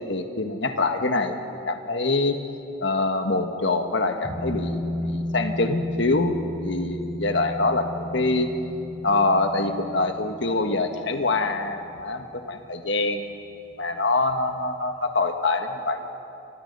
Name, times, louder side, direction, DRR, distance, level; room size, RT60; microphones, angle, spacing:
voice 1, 0.0-1.4 1.7-2.4 2.8-8.5 9.0-13.3 13.8-16.1, left 2 dB, 65° left, 6 dB, 1.6 m, -25 dB
sound 1, 4.2-13.4 13.7-13.8, left 1 dB, 20° right, 6.5 m, -34 dB
30.0 x 25.5 x 5.5 m, 2.9 s
head